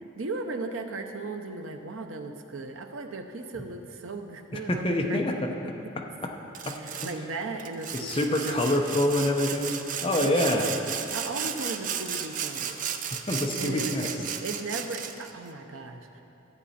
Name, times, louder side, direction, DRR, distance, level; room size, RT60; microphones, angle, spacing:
voice 1, 0.0-5.2 5.6-5.9 6.8-9.0 10.2-12.9 13.6-14.1 14.4-16.2, right 3 dB, 85° right, 5 dB, 0.7 m, -37 dB
voice 2, 4.7-5.5 6.7-7.1 7.9-10.7 13.3-14.0, left 1 dB, 25° left, 1 dB, 0.8 m, -26 dB
Sawing, 6.5-7.2 7.6-15.3, right 8 dB, 40° right, 0.4 m, -34 dB
13.0 x 8.1 x 4.2 m, 2.9 s
head